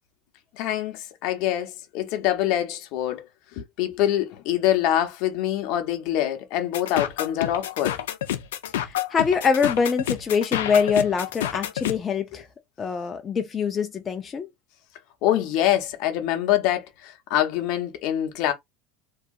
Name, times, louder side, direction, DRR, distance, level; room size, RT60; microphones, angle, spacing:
voice 1, 0.5-3.3 3.5-8.0 12.3-12.4 15.2-18.5, left 12 dB, 65° left, 0.7 m, -25 dB
sound 1, 6.7-11.9, left 11 dB, 90° left, 0.4 m, -29 dB
voice 2, 8.7-12.5 12.8-14.5, left 6 dB, 30° left, 0.4 m, -24 dB
2.7 x 2.4 x 2.3 m
supercardioid pair, 110°, 0 cm